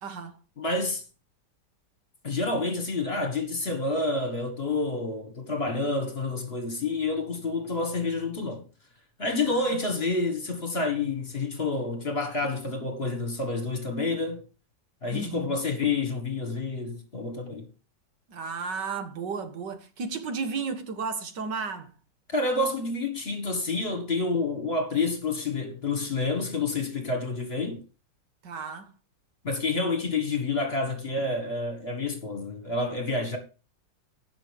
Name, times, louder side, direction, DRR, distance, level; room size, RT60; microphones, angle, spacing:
voice 1, 0.0-0.4 9.5-9.6 15.1-15.6 18.3-21.9 28.4-28.9, right 5 dB, 75° right, 2.0 m, -33 dB
voice 2, 0.6-1.0 2.2-8.6 9.2-14.4 15.0-17.7 22.3-27.8 29.4-33.4, left 3 dB, 35° left, 1.9 m, -28 dB
17.5 x 6.2 x 3.5 m
omnidirectional pair, 1.9 m